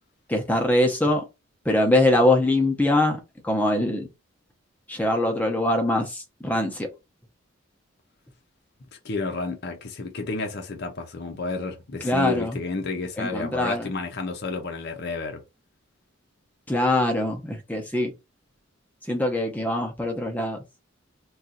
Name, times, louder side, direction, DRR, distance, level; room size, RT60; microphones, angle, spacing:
voice 1, 0.3-1.2 1.6-4.1 4.9-6.9 12.0-12.6 13.2-13.9 16.7-18.1 19.0-20.6, left 1 dB, 10° left, 0.6 m, -23 dB
voice 2, 9.0-15.4, left 3 dB, 50° left, 0.6 m, -31 dB
2.6 x 2.4 x 4.0 m
head